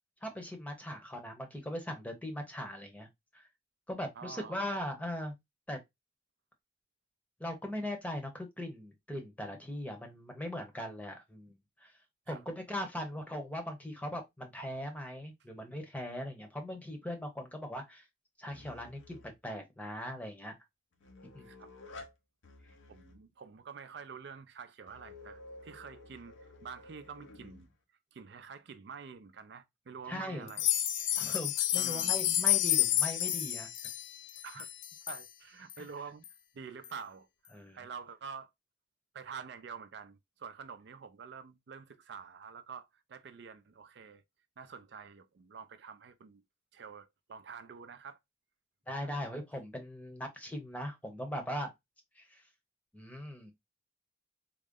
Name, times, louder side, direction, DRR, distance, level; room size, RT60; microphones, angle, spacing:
voice 1, 0.2-3.1 3.3-3.5 3.9-5.3 5.7-5.8 7.4-11.9 12.3-18.0 18.4-20.5 21.3-21.5 30.1-30.5 31.2-33.7 35.8-35.9 37.5-37.8 48.9-51.7 52.2-52.4 52.9-53.5, left 1 dB, 10° left, 0.7 m, -40 dB
voice 2, 4.2-4.7 12.3-12.4 21.4-21.7 22.9-26.4 26.6-27.7 28.1-30.7 31.8-32.2 34.4-34.7 35.1-36.2 36.5-37.3 37.7-38.5 39.1-44.2 44.6-46.4 46.7-48.2 49.0-49.2, right 6 dB, 60° right, 0.4 m, -47 dB
sound 1, 18.5-19.4 20.9-22.1 22.4-23.2 24.9-27.7, left 2 dB, 90° left, 0.9 m, -52 dB
sound 2, 30.5-35.2 35.7-35.8 36.2-36.3 36.8-36.9, left 12 dB, 70° left, 0.3 m, -30 dB
3.7 x 2.1 x 3.6 m
head